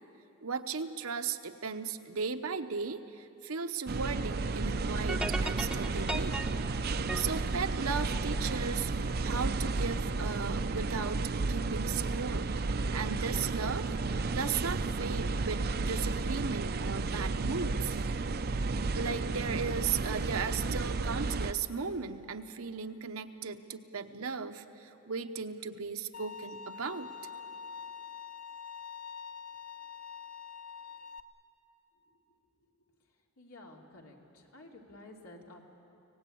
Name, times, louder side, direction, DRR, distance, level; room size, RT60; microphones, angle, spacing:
voice 1, 0.4-6.5 6.9-8.9 9.2-11.2 11.5-13.9 14.3-18.0 18.9-27.1, right 5 dB, 75° right, 8 dB, 0.9 m, -36 dB
sound 1, 3.9-21.5, right 3 dB, 45° right, 0.6 m, -32 dB
sound 2, 5.1-8.5, right 2 dB, 5° right, 0.7 m, -38 dB
Bowed string instrument, 26.1-31.2, left 6 dB, 40° left, 0.9 m, -45 dB
voice 2, 33.4-35.6, left 2 dB, 85° left, 0 dB, 2.8 m, -52 dB
25.0 x 18.0 x 8.6 m, 2.9 s
head